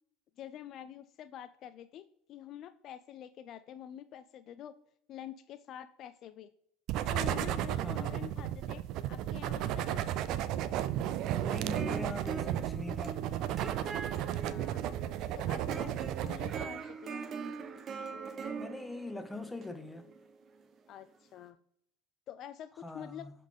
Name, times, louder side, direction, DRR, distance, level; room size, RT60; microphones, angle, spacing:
voice 1, 0.4-4.7 5.1-6.5 7.1-8.8 9.1-10.0 14.1-14.8 15.3-17.2 20.9-21.6 22.3-23.3, left 10 dB, 50° left, 0.3 m, -47 dB
sound 1, 6.9-16.6, right 11 dB, 60° right, 0.4 m, -34 dB
voice 2, 7.8-8.2 11.3-13.2 18.5-20.1 22.8-23.3, left 2 dB, 10° left, 0.8 m, -42 dB
sound 2, 11.5-20.8, right 5 dB, 40° right, 0.8 m, -43 dB
7.1 x 4.1 x 3.6 m
hypercardioid pair, 75°, 0 cm